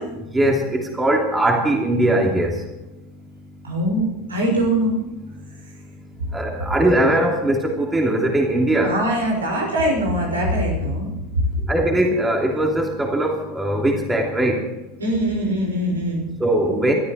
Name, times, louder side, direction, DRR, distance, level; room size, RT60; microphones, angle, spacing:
voice 1, 0.1-2.6 6.3-9.0 11.7-14.7 16.4-16.9, right 1 dB, 10° right, 1 dB, 3.0 m, -20 dB
voice 2, 3.6-5.0 8.8-11.5 15.0-16.2, right 1 dB, 75° right, 0 dB, 6.2 m, -22 dB
21.5 x 14.0 x 4.7 m, 1.0 s
figure-of-eight pair, 85°, 0 cm